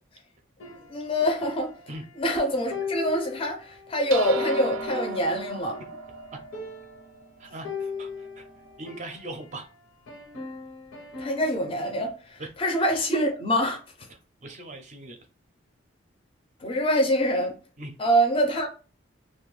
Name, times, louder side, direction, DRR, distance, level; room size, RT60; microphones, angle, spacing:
sound 1, 0.6-2.4 2.7-6.0 6.3-6.4 6.5-7.1 7.6-9.6 10.1-11.7, left 5 dB, 85° left, 0.7 m, -37 dB
voice 1, 0.9-1.7 2.2-5.8 11.2-13.8 16.6-17.5 18.0-18.7, equal, 25° left, 0.4 m, -25 dB
sound 2, 4.1-8.8, right 5 dB, 90° right, 0.4 m, -38 dB
voice 2, 7.4-8.5 8.8-9.7 12.4-12.5 14.1-15.2 17.8-18.1, right 1 dB, 35° right, 0.4 m, -40 dB
2.5 x 2.2 x 3.0 m
head